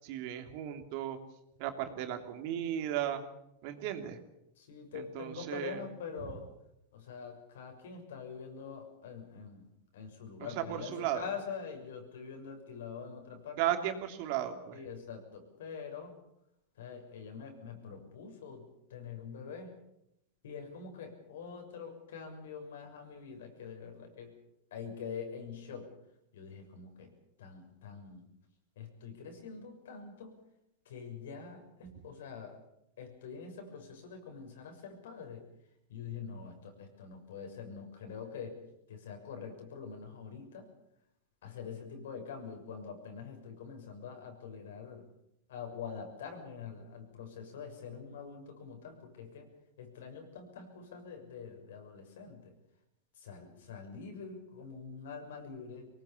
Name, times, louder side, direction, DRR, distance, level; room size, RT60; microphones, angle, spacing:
voice 1, 0.0-1.2 1.6-3.2 3.6-4.2 4.9-5.8 10.4-11.2 13.6-14.8, right 11 dB, 55° right, 6 dB, 3.0 m, -35 dB
voice 2, 4.6-6.4 6.9-9.7 9.9-13.6 14.7-16.1 16.8-19.7 20.4-24.4 24.7-25.9 26.3-28.3 28.7-30.4 30.8-32.6 33.0-35.5 35.9-38.6 38.9-40.7 41.4-45.1 45.5-49.5 49.8-52.5 53.1-55.9, left 6 dB, 80° left, 4 dB, 6.6 m, -45 dB
23.5 x 19.5 x 7.1 m, 0.82 s
supercardioid pair, 130°, 0 cm